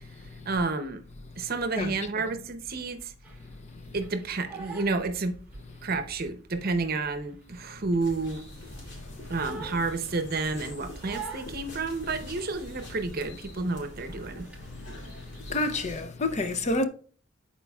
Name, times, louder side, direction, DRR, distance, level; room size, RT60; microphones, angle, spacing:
voice 1, 0.4-1.0 1.4-3.1 3.9-5.3 5.8-8.4 9.3-14.5, right 3 dB, 50° right, 0.7 m, -30 dB
Crying sobbing, 3.2-5.9 6.2-8.5 8.8-10.5 11.0-12.9 13.2-13.5 13.8-15.4, right 4 dB, 5° right, 1.3 m, -45 dB
sound 1, 8.0-16.0, left 1 dB, 60° left, 2.3 m, -44 dB
voice 2, 15.5-16.9, left 2 dB, 35° left, 0.6 m, -28 dB
11.0 x 4.4 x 2.3 m
head